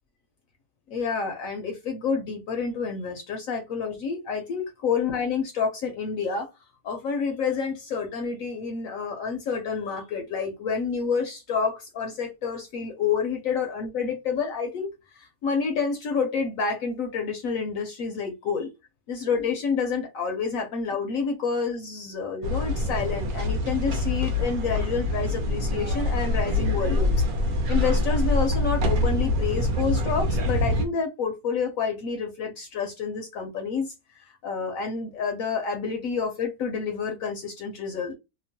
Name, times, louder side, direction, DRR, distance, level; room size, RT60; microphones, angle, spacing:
voice 1, 0.9-6.5 6.8-14.9 15.2-18.7 19.1-27.2 27.7-38.2, left 5 dB, 70° left, 0.8 m, -29 dB
sound 1, 22.4-30.8, left 1 dB, 65° right, 1.0 m, -25 dB
2.9 x 2.1 x 2.7 m
omnidirectional pair, 1.7 m